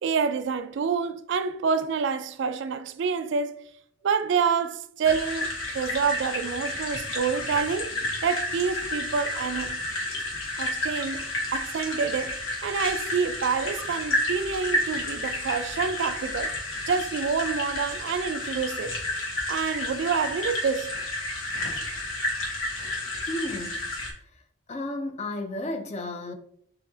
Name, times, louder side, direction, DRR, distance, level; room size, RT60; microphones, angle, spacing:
voice 1, 0.0-3.6 4.0-8.0 8.2-9.8 10.6-16.6 16.9-19.0 19.5-20.9, right 6 dB, 55° right, 0.3 m, -27 dB
sound 1, 5.0-24.1, left 1 dB, 75° left, 1.4 m, -31 dB
voice 2, 23.3-23.9 24.1-24.4 24.7-26.3, left 1 dB, 30° left, 0.5 m, -33 dB
6.7 x 2.7 x 2.8 m
head